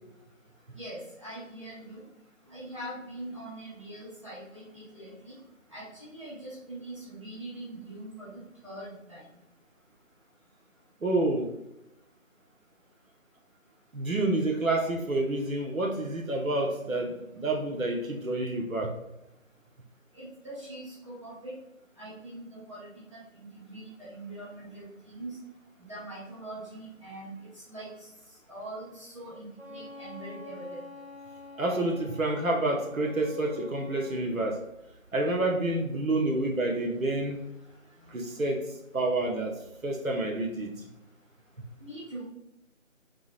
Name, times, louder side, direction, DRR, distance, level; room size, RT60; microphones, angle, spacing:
voice 1, 0.7-2.0 2.5-5.3 5.7-5.8 6.1-9.2 20.1-21.5 22.0-25.4 25.8-27.4 27.7-27.9 28.5-30.8 38.1-38.2 41.8-42.2, right 1 dB, 25° right, -9 dB, 1.0 m, -42 dB
voice 2, 11.0-11.5 13.9-18.9 31.6-34.6 35.1-37.4 38.1-38.6 38.9-39.5 39.8-40.7, right 2 dB, 80° right, 1 dB, 0.9 m, -28 dB
Wind instrument woodwind instrument, 29.6-34.2, left 2 dB, 35° left, 1.0 m, -46 dB
3.6 x 3.3 x 2.5 m, 0.89 s
figure-of-eight pair, 165°, 40 cm